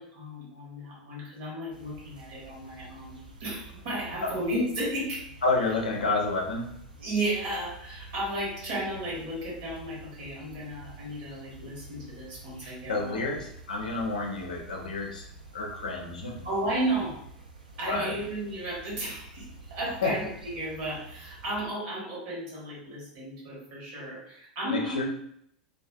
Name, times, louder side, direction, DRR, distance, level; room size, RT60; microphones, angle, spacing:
voice 1, 0.0-5.2 7.0-13.2 16.4-17.2 17.8-25.0, right 1 dB, 50° right, -4 dB, 1.1 m, -33 dB
sound 1, 1.7-21.6, right 2 dB, 85° right, 0.4 m, -48 dB
voice 2, 5.4-6.7 12.9-15.2 15.5-16.4 17.9-18.2 20.0-20.1 24.7-25.0, left 3 dB, 70° left, 0 dB, 0.5 m, -29 dB
2.4 x 2.3 x 2.2 m, 0.70 s
figure-of-eight pair, 85°, 4 cm